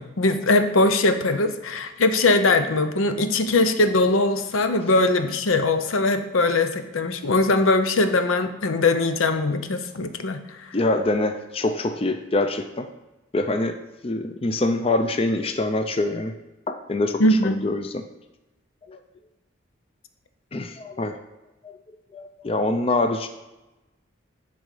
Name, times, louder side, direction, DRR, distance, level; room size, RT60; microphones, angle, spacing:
voice 1, 0.0-10.7 17.2-17.6, left 2 dB, 85° left, 8 dB, 0.7 m, -21 dB
voice 2, 10.7-12.9 13.3-13.7 14.0-16.3 16.7-18.0 18.9-19.0 20.5-21.2 21.6-21.8 22.1-23.3, left 2 dB, 30° left, 7 dB, 0.4 m, -25 dB
10.0 x 4.0 x 4.8 m, 1.0 s
head